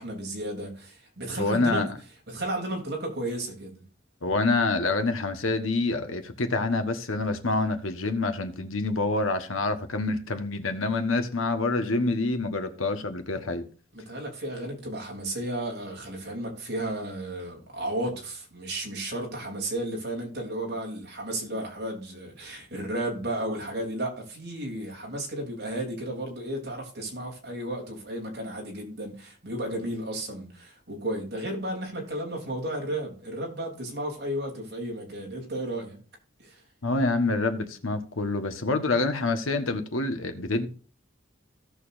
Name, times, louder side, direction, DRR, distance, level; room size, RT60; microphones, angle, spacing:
voice 1, 0.0-1.9 2.3-3.8 13.9-36.0 36.4-36.6, right 1 dB, 55° right, 3.2 m, -33 dB
voice 2, 1.4-1.9 4.2-13.6 36.8-40.7, left 3 dB, 85° left, 1.3 m, -27 dB
16.5 x 6.7 x 2.6 m
head